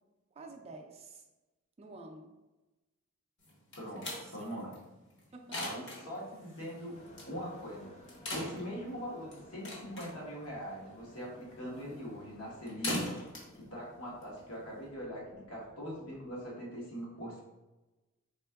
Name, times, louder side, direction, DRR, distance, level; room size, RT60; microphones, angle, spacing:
voice 1, 0.3-1.2 1.8-2.3 3.9-4.6 5.3-5.7, right 2 dB, 30° right, 2 dB, 0.4 m, -49 dB
sound 1, 3.4-14.9, left 1 dB, 55° left, 1.1 m, -43 dB
voice 2, 4.3-4.7 5.5-6.9 7.3-7.9 8.3-13.0 13.6-17.4, equal, 75° left, -3 dB, 1.2 m, -42 dB
sound 2, 6.9-16.4, left 1 dB, 35° left, 0.5 m, -58 dB
4.2 x 3.7 x 2.3 m, 1.1 s
head